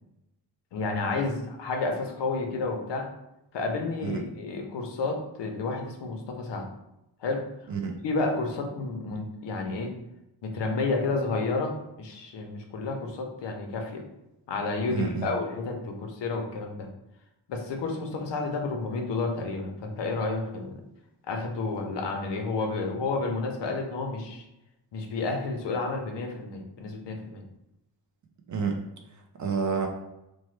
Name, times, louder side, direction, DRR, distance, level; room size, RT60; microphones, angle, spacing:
voice 1, 0.7-3.1 3.5-6.7 7.2-7.4 8.0-9.9 10.4-14.0 14.5-16.9 17.5-20.8 21.3-24.4 24.9-27.4, left 3 dB, 70° left, 3 dB, 0.7 m, -31 dB
voice 2, 14.9-15.3 28.5-28.8 29.4-29.9, right 5 dB, 45° right, 3 dB, 0.4 m, -29 dB
3.0 x 2.1 x 3.1 m, 0.88 s
wide cardioid pair, 160°, 43 cm